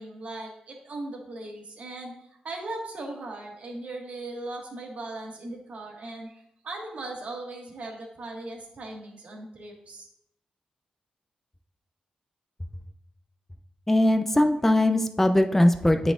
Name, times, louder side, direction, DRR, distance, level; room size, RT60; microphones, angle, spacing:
voice 1, 0.0-2.1 2.4-10.1, right 2 dB, 60° right, -1 dB, 1.7 m, -38 dB
voice 2, 13.9-16.1, left 1 dB, 10° left, 7 dB, 0.5 m, -20 dB
9.9 x 4.1 x 2.5 m, 0.79 s
cardioid pair, 75°, 3 cm